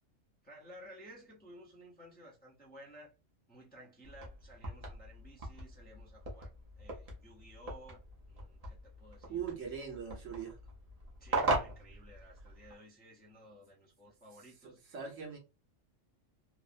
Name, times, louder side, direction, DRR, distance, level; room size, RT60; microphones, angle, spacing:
voice 1, 0.4-3.1 3.5-6.5 6.8-8.0 8.3-9.4 11.2-14.8, equal, 10° left, 0.6 m, -55 dB
sound 1, 4.0-12.7, right 2 dB, 35° right, 0.8 m, -40 dB
voice 2, 9.3-10.6 14.9-15.4, right 7 dB, 80° right, 1.3 m, -40 dB
3.1 x 2.0 x 2.4 m
omnidirectional pair, 1.3 m